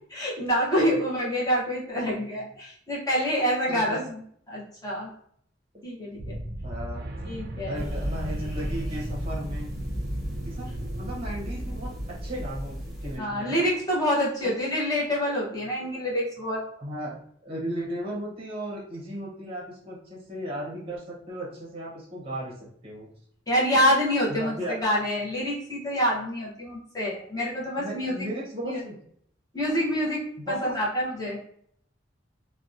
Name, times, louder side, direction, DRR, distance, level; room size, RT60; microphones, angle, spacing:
voice 1, 0.1-4.2 4.5-5.1 5.8-6.4 7.2-7.8 13.2-16.6 23.5-28.1 28.6-28.8 29.5-31.4, equal, 20° left, -5 dB, 0.8 m, -27 dB
voice 2, 3.7-4.0 6.6-7.0 7.6-9.7 10.4-11.9 12.2-13.6 14.4-14.5 16.8-17.2 17.4-23.1 24.3-24.8 27.8-28.9 30.4-30.7, equal, 30° right, -3 dB, 0.7 m, -35 dB
sound 1, 6.2-13.9, right 1 dB, 60° right, 0.4 m, -37 dB
sound 2, 7.7-13.2, equal, ahead, 1.1 m, -35 dB
2.7 x 2.1 x 2.4 m, 0.65 s
head